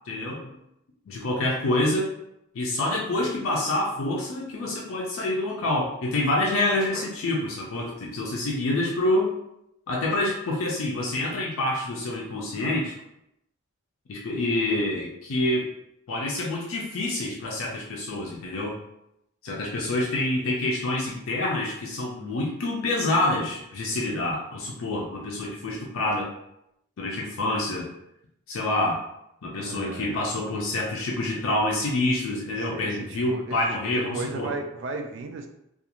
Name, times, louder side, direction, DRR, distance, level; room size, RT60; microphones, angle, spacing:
voice 1, 0.1-0.6 1.1-2.1 2.5-9.3 9.9-12.9 14.1-15.7 16.1-18.8 19.4-26.3 27.0-27.9 28.5-29.0 29.4-34.5, left 2 dB, 75° left, -2 dB, 0.4 m, -27 dB
voice 2, 29.6-30.2 32.5-33.6 33.9-35.5, right 3 dB, 60° right, 4 dB, 0.3 m, -35 dB
2.4 x 2.3 x 2.8 m, 0.80 s
head